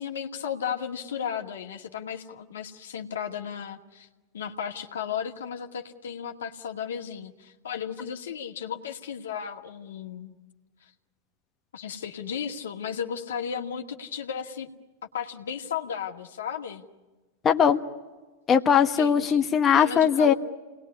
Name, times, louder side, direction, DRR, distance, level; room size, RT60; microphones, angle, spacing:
voice 1, 0.0-4.1 4.3-10.3 11.7-14.7 15.1-16.8 19.0-19.4 19.7-20.3, left 8 dB, 80° left, 3 dB, 2.1 m, -34 dB
voice 2, 17.4-17.8 18.5-20.3, left 7 dB, 25° left, 5 dB, 1.2 m, -20 dB
28.5 x 20.0 x 9.8 m, 1.3 s
hypercardioid pair, 105°, 0 cm